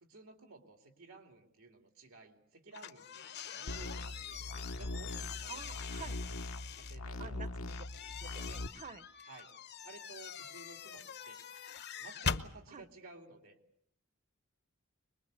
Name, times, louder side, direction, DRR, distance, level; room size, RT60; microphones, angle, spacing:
voice 1, 0.0-5.8 6.7-7.5 9.2-9.5 9.8-11.4 12.0-13.6, right 3 dB, 85° right, 5 dB, 2.7 m, -55 dB
sound 1, 2.7-7.0 7.7-12.5, left 6 dB, 55° left, 1.0 m, -43 dB
sound 2, 3.7-8.7, left 2 dB, 80° left, 1.1 m, -42 dB
voice 2, 5.5-6.2 7.2-7.8 8.2-9.1 12.7-12.9, right 5 dB, 35° right, 14 dB, 0.9 m, -49 dB
24.0 x 21.0 x 8.2 m, 0.74 s
head